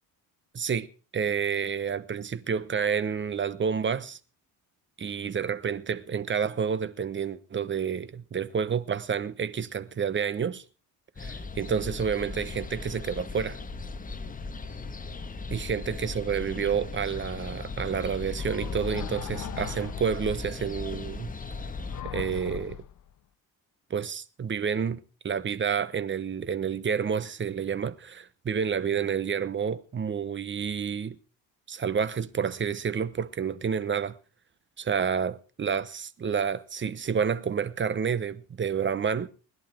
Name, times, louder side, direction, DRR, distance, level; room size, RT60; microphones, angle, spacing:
voice 1, 0.5-0.9 1.1-4.2 5.0-10.6 11.2-13.6 15.5-21.3 22.0-22.8 23.9-25.0 25.2-31.2 31.7-34.1 34.8-39.3, right 7 dB, 30° right, 1.0 m, -29 dB
sound 1, 11.2-22.0, left 3 dB, 20° left, 1.4 m, -38 dB
sound 2, 18.4-20.4 21.7-23.1, left 10 dB, 50° left, 1.0 m, -39 dB
20.5 x 11.0 x 4.5 m
cardioid pair, 120°, 39 cm